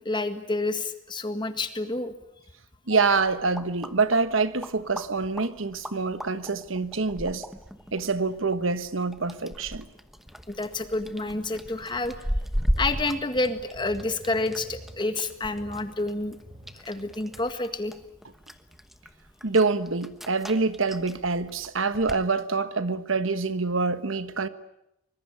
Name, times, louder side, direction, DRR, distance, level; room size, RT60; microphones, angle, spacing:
voice 1, 0.0-2.1 10.5-12.2 12.8-16.4 16.7-17.9, left 2 dB, 25° left, 1.9 m, -29 dB
voice 2, 2.9-7.4 7.9-9.9 19.4-24.5, right 4 dB, 80° right, 1.3 m, -26 dB
sound 1, 3.1-22.2, equal, ahead, 1.1 m, -37 dB
sound 2, 7.5-17.4, equal, 30° right, 3.7 m, -52 dB
25.0 x 21.5 x 9.4 m
head